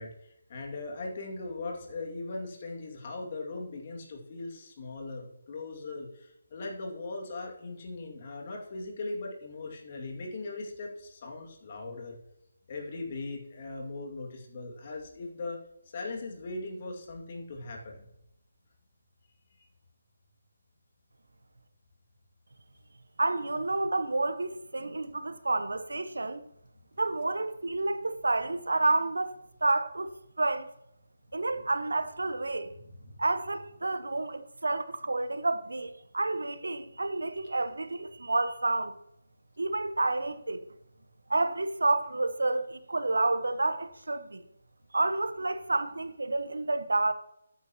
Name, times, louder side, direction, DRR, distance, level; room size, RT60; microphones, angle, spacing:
voice 1, 0.0-12.2 12.7-15.6 15.9-18.1 32.8-33.2, left 3 dB, 35° left, 2.3 m, -39 dB
voice 2, 23.2-26.4 27.0-30.7 31.3-32.7 33.2-38.9 39.6-40.6 41.3-44.4 44.9-47.1, right 2 dB, 70° right, 0.9 m, -29 dB
14.0 x 9.2 x 3.0 m
figure-of-eight pair, 150°, 0 cm